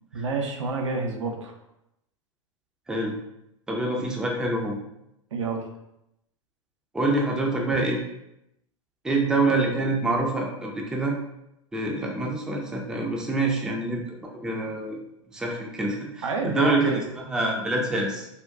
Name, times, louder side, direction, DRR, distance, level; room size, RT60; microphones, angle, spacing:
voice 1, 0.1-1.5 5.3-5.6 16.2-17.1, right 4 dB, 70° right, 3 dB, 0.5 m, -28 dB
voice 2, 2.9-3.2 3.7-4.8 6.9-8.0 9.0-11.2 11.7-15.0 15.3-18.3, right 2 dB, 5° right, 0 dB, 0.4 m, -26 dB
3.6 x 2.2 x 2.3 m, 0.84 s
figure-of-eight pair, 95°, 16 cm